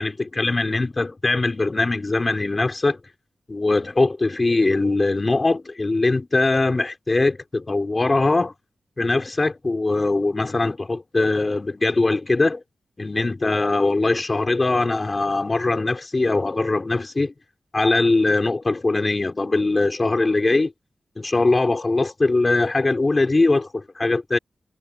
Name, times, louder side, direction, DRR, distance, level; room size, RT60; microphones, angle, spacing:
voice 1, 0.0-3.0 3.5-8.5 9.0-12.6 13.0-17.3 17.7-20.7 21.2-24.4, left 2 dB, 30° left, 4.0 m, -21 dB
cardioid pair, 75°, 0 cm